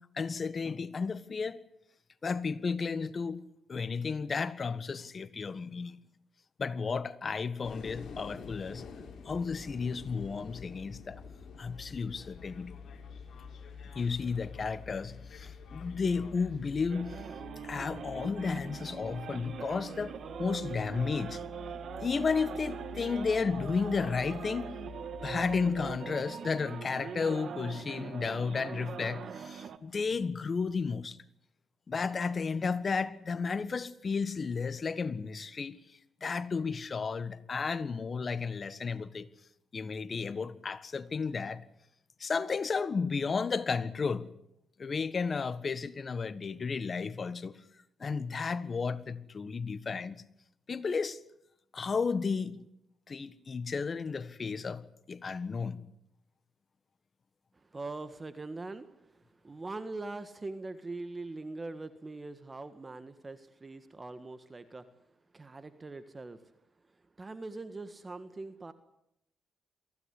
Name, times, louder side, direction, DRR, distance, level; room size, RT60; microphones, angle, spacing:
voice 1, 0.0-1.6 2.2-3.4 3.7-5.9 6.6-8.9 9.2-11.2 11.6-12.7 13.9-17.2 17.6-21.4 22.0-24.7 25.2-31.2 31.9-35.8 36.2-39.3 39.7-41.6 42.2-44.3 44.8-47.6 48.0-50.2 50.7-51.2 51.7-52.6 53.1-55.8, left 5 dB, 40° left, 1.5 m, -33 dB
sound 1, 7.6-25.9, left 5 dB, 60° left, 4.4 m, -48 dB
sound 2, 16.9-29.8, right 7 dB, 65° right, 1.6 m, -42 dB
voice 2, 57.5-64.9 65.3-66.4 67.2-68.7, right 3 dB, 25° right, 1.6 m, -42 dB
23.5 x 16.5 x 9.8 m
cardioid pair, 80°, 0 cm